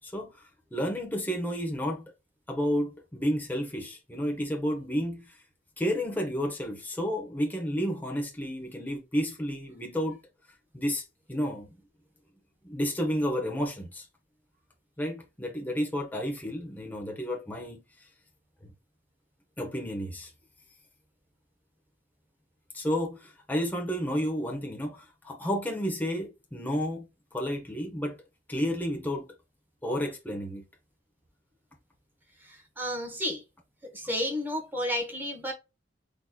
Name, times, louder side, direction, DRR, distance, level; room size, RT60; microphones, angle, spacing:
voice 1, 0.0-2.1 2.5-5.4 5.8-10.2 10.7-11.0 11.3-11.8 12.6-14.1 15.0-17.8 18.6-18.7 19.6-20.3 22.7-28.2 28.5-29.3 29.8-30.6, equal, 10° left, 0.8 m, -31 dB
voice 2, 32.4-33.4 33.9-35.5, equal, 10° right, 1.0 m, -32 dB
3.8 x 2.9 x 2.2 m
head